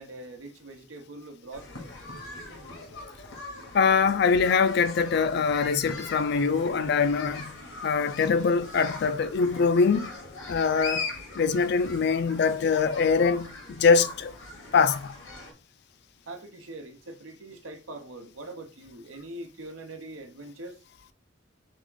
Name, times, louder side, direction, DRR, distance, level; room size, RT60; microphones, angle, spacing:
voice 1, 0.0-1.7 16.3-20.8, right 2 dB, 85° right, 0.9 m, -42 dB
sound 1, 1.5-15.5, left 3 dB, 85° left, 1.5 m, -40 dB
voice 2, 3.7-7.5 7.8-10.1 10.5-11.1 11.3-14.3 14.7-15.1, left 5 dB, 55° left, 0.4 m, -23 dB
3.6 x 3.5 x 3.7 m
head